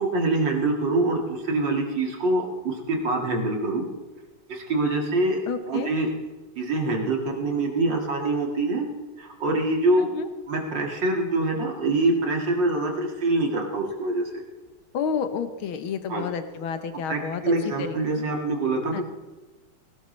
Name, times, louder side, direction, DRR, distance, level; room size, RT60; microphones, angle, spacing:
voice 1, 0.0-3.9 4.5-5.4 5.7-6.1 6.6-8.9 9.2-10.1 10.5-14.3 16.1-16.3 17.1-19.0, right 2 dB, 55° right, 1 dB, 2.6 m, -25 dB
voice 2, 5.5-5.9 10.0-10.3 14.9-18.2 18.9-19.0, left 6 dB, 70° left, 9 dB, 1.8 m, -30 dB
18.0 x 16.5 x 3.2 m, 1.2 s
omnidirectional pair, 2.4 m